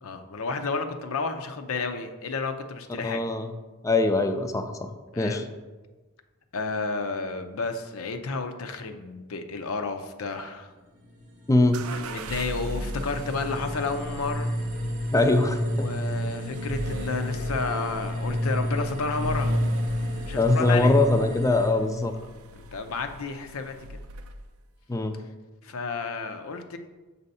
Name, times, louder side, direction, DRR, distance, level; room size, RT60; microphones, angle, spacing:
voice 1, 0.0-3.2 5.1-5.5 6.5-10.7 11.9-14.5 15.8-19.6 20.3-20.9 22.7-24.0 25.6-26.8, left 4 dB, 70° left, 7 dB, 0.6 m, -31 dB
voice 2, 3.0-3.5 3.8-4.9 5.2-5.4 11.5-11.8 15.1-15.9 20.4-22.1 24.9-25.2, left 2 dB, 15° left, 7 dB, 0.4 m, -22 dB
sound 1, 11.0-21.7, equal, 35° right, 0.8 m, -30 dB
sound 2, 11.7-24.6, right 1 dB, 70° right, 0.4 m, -40 dB
7.0 x 2.7 x 5.3 m, 1.2 s
head